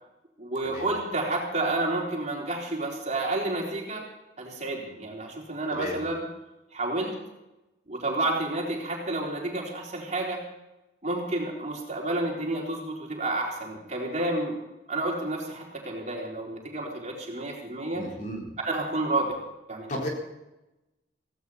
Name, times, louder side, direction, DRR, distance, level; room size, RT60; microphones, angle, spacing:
voice 1, 0.4-4.1 4.4-6.2 6.7-7.2 7.9-10.4 11.0-14.6 14.9-18.1 18.6-19.4 19.7-20.0, right 2 dB, 40° right, -1 dB, 4.1 m, -30 dB
voice 2, 5.7-6.0 17.9-18.4 19.9-20.1, equal, 45° left, -1 dB, 4.3 m, -33 dB
17.5 x 16.5 x 4.3 m, 0.97 s
head